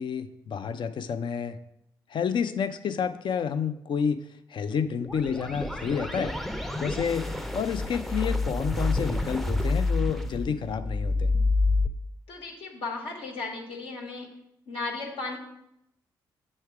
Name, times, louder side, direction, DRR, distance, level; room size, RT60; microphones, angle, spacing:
voice 1, 0.0-1.6 2.1-4.2 4.5-6.3 6.8-7.2 7.5-11.3, left 7 dB, 55° left, 10 dB, 0.5 m, -29 dB
sound 1, 5.0-11.9, left 2 dB, ahead, 0.5 m, -28 dB
voice 2, 12.3-14.3 14.7-15.4, left 3 dB, 70° left, 0 dB, 1.4 m, -35 dB
7.4 x 3.3 x 4.7 m, 0.81 s
hypercardioid pair, 50°, 10 cm